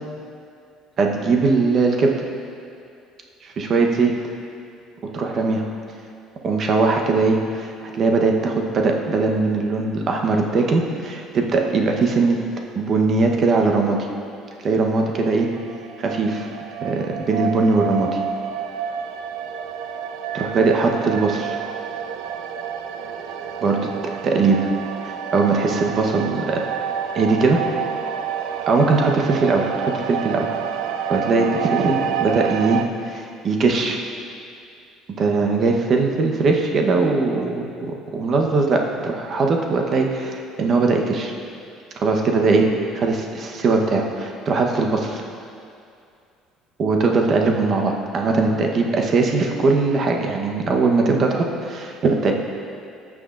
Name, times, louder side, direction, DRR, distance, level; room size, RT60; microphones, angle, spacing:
voice 1, 1.0-2.2 3.4-4.1 5.1-5.6 6.4-12.4 12.8-14.1 14.6-15.5 16.0-16.5 16.8-18.2 20.3-21.6 23.6-24.7 25.0-26.7 27.1-27.6 28.7-30.5 31.1-34.0 35.2-41.3 42.0-42.7 42.9-45.2 46.8-52.3, right 3 dB, 40° right, 2 dB, 1.0 m, -20 dB
sound 1, 14.8-32.8, right 8 dB, 80° right, 0.4 m, -29 dB
14.5 x 6.2 x 2.5 m, 2.4 s
cardioid pair, 120°, 0 cm